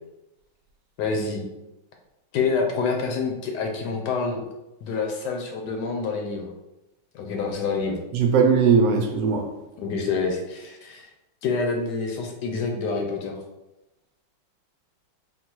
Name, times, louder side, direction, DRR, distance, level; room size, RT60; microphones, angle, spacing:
voice 1, 1.0-1.4 2.3-4.4 4.8-6.5 7.1-8.0 9.8-11.1 11.4-13.4, left 4 dB, 70° left, 2 dB, 1.1 m, -27 dB
voice 2, 8.1-9.4, right 5 dB, 75° right, 3 dB, 1.2 m, -19 dB
3.8 x 2.2 x 4.4 m, 0.96 s
omnidirectional pair, 2.0 m